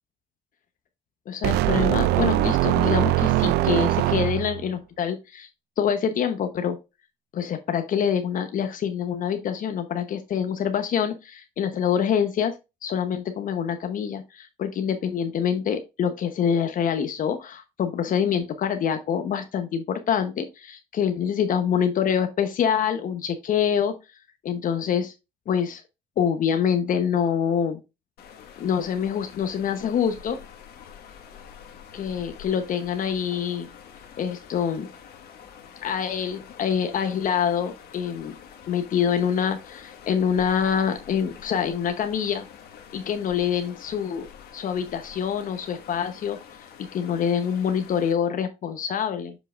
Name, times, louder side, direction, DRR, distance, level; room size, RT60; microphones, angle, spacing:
voice 1, 1.3-5.5 5.8-6.8 7.3-12.6 12.8-24.0 24.4-25.1 25.5-25.8 26.2-27.8 28.6-30.4 31.9-33.7 34.2-34.9 35.8-38.3 38.7-42.5 42.9-44.3 44.5-46.4 46.9-49.4, left 8 dB, 55° left, 8 dB, 1.0 m, -25 dB
sound 1, 1.4-4.7, right 15 dB, 75° right, 0.4 m, -22 dB
sound 2, 28.2-48.1, left 8 dB, 70° left, 1.6 m, -46 dB
7.2 x 5.5 x 2.5 m, 0.25 s
cardioid pair, 110°, 17 cm